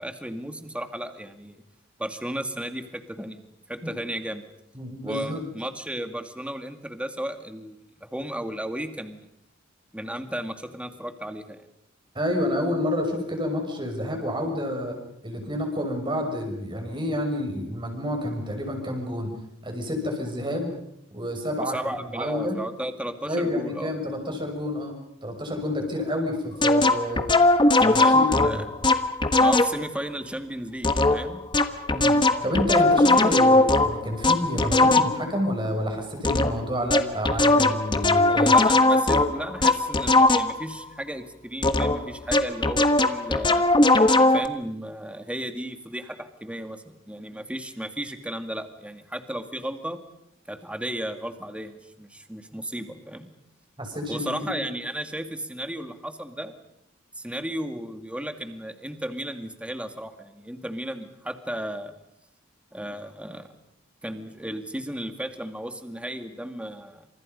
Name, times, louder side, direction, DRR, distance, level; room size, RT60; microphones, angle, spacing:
voice 1, 0.0-1.6 2.0-3.4 3.7-4.4 5.0-9.2 9.9-11.7 21.6-23.9 28.0-28.6 29.4-31.4 38.3-43.7 44.3-50.0 50.5-53.3 54.1-56.6 57.2-61.9 62.7-63.5 64.0-67.1, right 1 dB, 5° right, 7 dB, 2.1 m, -34 dB
voice 2, 4.7-5.4 12.1-15.0 15.2-19.3 19.6-20.7 21.1-22.6 23.3-24.9 25.2-27.3 27.8-28.6 31.9-38.5 53.8-54.3, left 1 dB, 25° right, 3 dB, 6.4 m, -29 dB
sound 1, 26.6-29.9 30.8-35.4 36.2-36.6 36.9-40.7 41.6-44.5, left 2 dB, 25° left, 1.5 m, -19 dB
29.5 x 27.5 x 5.4 m, 0.76 s
head